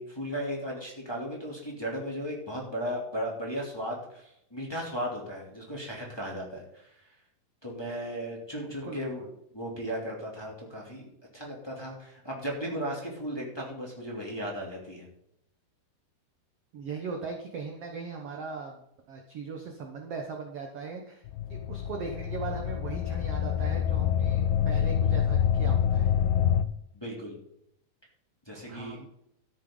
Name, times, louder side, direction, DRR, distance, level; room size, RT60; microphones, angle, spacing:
voice 1, 0.0-7.1 7.6-9.3 9.5-15.1 26.9-27.3 28.4-29.0, equal, 5° left, -3 dB, 2.5 m, -36 dB
voice 2, 16.7-21.2 21.5-26.1 28.5-29.1, right 5 dB, 70° right, 2 dB, 1.5 m, -39 dB
sound 1, 21.3-26.6, left 9 dB, 90° left, 2.6 m, -26 dB
13.0 x 10.0 x 3.9 m, 0.78 s
omnidirectional pair, 4.5 m